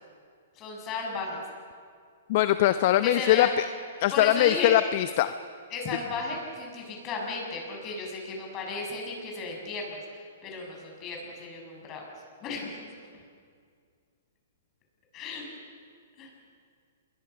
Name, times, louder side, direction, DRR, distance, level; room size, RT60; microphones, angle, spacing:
voice 1, 0.6-1.4 3.0-3.6 4.1-4.8 5.7-12.1 12.4-12.9 15.1-15.5 16.2-16.3, left 3 dB, 30° left, 0 dB, 7.2 m, -34 dB
voice 2, 2.3-3.6 4.0-5.3, left 13 dB, 50° left, 11 dB, 0.8 m, -22 dB
28.0 x 22.0 x 6.0 m, 2.1 s
hypercardioid pair, 130°, 0 cm